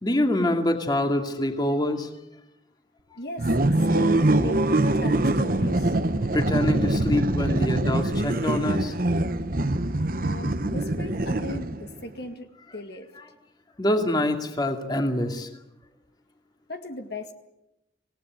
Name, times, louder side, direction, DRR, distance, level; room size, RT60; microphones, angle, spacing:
voice 1, 0.0-2.1 3.1-3.2 6.3-8.9 13.8-15.5, left 1 dB, 20° left, 4 dB, 2.4 m, -25 dB
voice 2, 3.2-6.0 10.2-13.1 16.7-17.3, equal, 55° left, 6 dB, 2.0 m, -38 dB
sound 1, 3.4-11.9, right 1 dB, 45° right, 1.1 m, -24 dB
26.5 x 18.5 x 9.6 m, 0.92 s
head